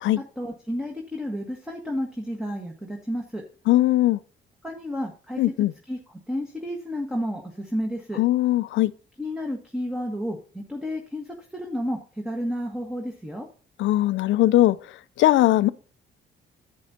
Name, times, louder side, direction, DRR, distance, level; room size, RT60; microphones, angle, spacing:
voice 1, 0.2-3.4 4.6-5.4 5.9-6.0 6.3-8.2 9.2-11.3 11.5-12.0 12.2-13.5, equal, 5° right, 1.4 m, -31 dB
voice 2, 3.7-4.2 5.4-5.7 8.2-8.9 13.8-14.8 15.2-15.7, left 15 dB, 75° left, 0.5 m, -19 dB
10.5 x 8.3 x 2.8 m
cardioid pair, 90°, 20 cm